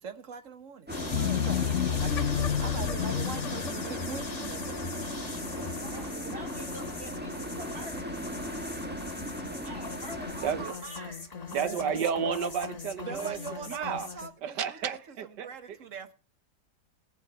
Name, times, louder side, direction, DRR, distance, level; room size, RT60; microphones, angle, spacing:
voice 1, 0.0-5.6 5.9-6.1 9.4-9.7 11.6-11.8 13.0-15.0 15.4-16.1, right 6 dB, 50° right, 1.3 m, -43 dB
sound 1, 0.9-14.3, left 4 dB, 25° left, 1.3 m, -39 dB
sound 2, 0.9-10.7, right 1 dB, 5° right, 1.2 m, -38 dB
sound 3, 1.1-5.5, left 9 dB, 55° left, 0.9 m, -31 dB
voice 2, 5.5-8.2 9.6-11.3 11.6-12.2, right 1 dB, 35° right, 4.2 m, -45 dB
voice 3, 10.4-10.8 11.5-13.4 13.7-14.1 14.4-15.8, right 7 dB, 85° right, 1.7 m, -32 dB
21.0 x 7.1 x 5.8 m
omnidirectional pair, 1.8 m